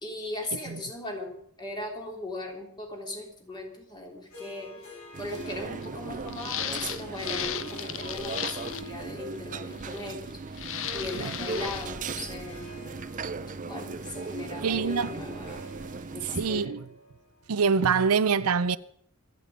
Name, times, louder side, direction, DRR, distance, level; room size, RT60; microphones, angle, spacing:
voice 1, 0.0-4.9 5.2-12.6 13.6-15.7 16.1-16.8, left 2 dB, 20° left, 3.6 m, -38 dB
Harp, 4.3-17.9, equal, 85° left, 6.3 m, -48 dB
sound 1, 5.1-16.7, right 4 dB, 35° right, 0.5 m, -38 dB
sound 2, 5.5-5.6 5.8-5.9 6.3-8.9 9.8-10.3 10.6-11.9, left 10 dB, 60° left, 0.8 m, -35 dB
voice 2, 14.6-15.1 16.3-16.8 17.5-18.8, right 5 dB, 85° right, 0.6 m, -25 dB
26.0 x 9.3 x 5.2 m
head